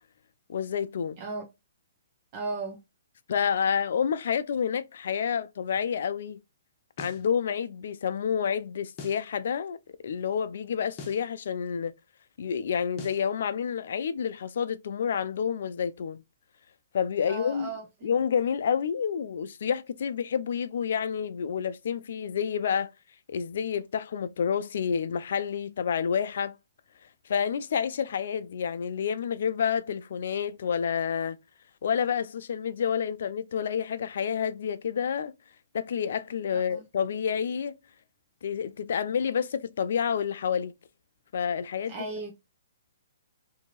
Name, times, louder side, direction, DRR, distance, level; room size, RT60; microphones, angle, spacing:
voice 1, 0.5-1.2 3.3-6.4 7.0-11.9 12.4-16.2 16.9-17.7 18.0-22.9 23.3-26.6 27.3-31.4 31.8-35.3 35.7-37.8 38.4-40.7 41.3-41.9, left 7 dB, 65° left, 0.4 m, -29 dB
voice 2, 1.2-1.5 2.3-2.8 17.3-18.1 36.5-36.8 41.9-42.3, right 3 dB, 35° right, 0.7 m, -36 dB
sound 1, 7.0-7.3 9.0-9.3 11.0-11.3 13.0-13.3, left 4 dB, 30° left, 0.8 m, -42 dB
2.7 x 2.6 x 2.8 m
hypercardioid pair, 145°, 0 cm